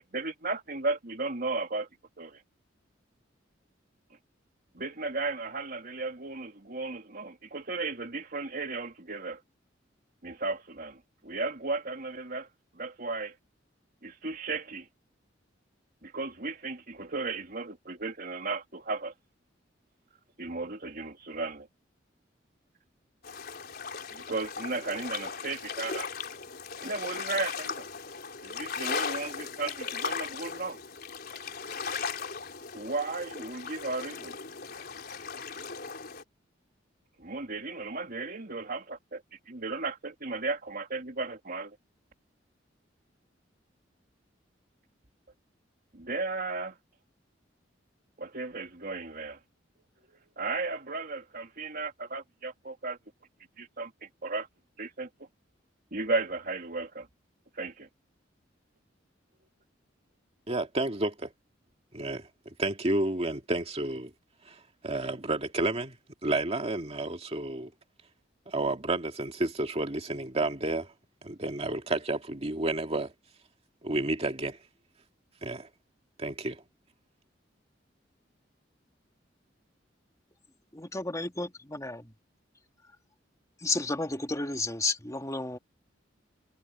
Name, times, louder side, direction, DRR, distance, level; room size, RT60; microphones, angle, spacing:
voice 1, 0.0-1.9 2.2-2.4 4.7-9.4 10.2-12.5 12.7-13.4 14.0-14.9 16.0-19.1 20.4-21.7 24.1-26.1 26.8-27.9 28.4-30.8 32.7-34.4 37.2-41.8 45.9-46.8 48.2-49.4 50.4-53.0 53.6-54.5 54.8-55.1 55.9-57.1 57.6-57.9, right 3 dB, 50° right, 3.1 m, -35 dB
sound 1, 23.2-36.2, left 5 dB, 55° left, 4.0 m, -37 dB
voice 2, 60.5-61.3 61.9-62.3 62.6-64.1 64.5-66.0 66.2-67.7 68.5-70.9 71.2-73.1 73.8-74.6 75.4-75.7 76.2-76.6, right 2 dB, 35° right, 2.4 m, -31 dB
voice 3, 80.7-82.1 83.6-85.6, left 2 dB, 20° left, 2.6 m, -32 dB
head